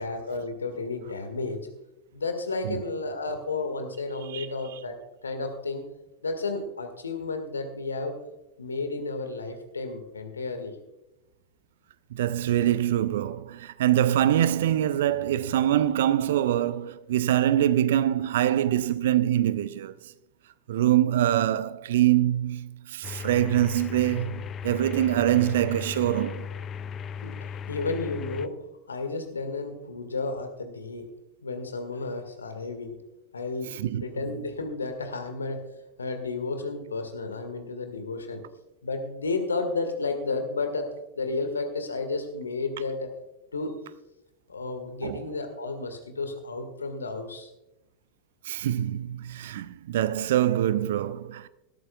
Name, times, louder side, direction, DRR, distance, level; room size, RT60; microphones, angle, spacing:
voice 1, 0.0-1.7 2.1-5.0 5.2-5.8 6.2-8.1 8.6-10.8 27.2-27.4 27.7-28.6 28.9-31.1 31.4-32.9 33.3-33.7 34.0-35.6 36.0-38.4 38.8-40.9 41.2-43.1 43.5-43.7 44.5-47.5, left 3 dB, 75° left, 1.8 m, -32 dB
voice 2, 12.1-19.9 20.7-26.5 33.7-34.2 45.0-45.2 48.4-51.5, right 12 dB, 55° right, 0.6 m, -24 dB
sound 1, 23.0-28.5, left 7 dB, 25° left, 0.5 m, -36 dB
17.5 x 13.0 x 2.4 m
figure-of-eight pair, 90°, 0 cm